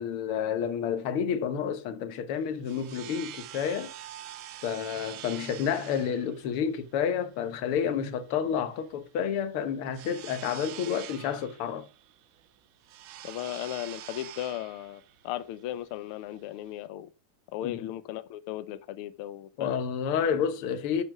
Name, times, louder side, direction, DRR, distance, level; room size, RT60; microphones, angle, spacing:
voice 1, 0.0-3.9 4.6-11.8 17.6-17.8 19.6-21.0, left 7 dB, 60° left, 1.6 m, -30 dB
sound 1, 2.3-16.9, right 12 dB, 85° right, 2.2 m, -46 dB
voice 2, 13.2-17.1 17.5-19.8, left 13 dB, 85° left, 1.2 m, -36 dB
10.5 x 5.6 x 6.0 m
omnidirectional pair, 3.4 m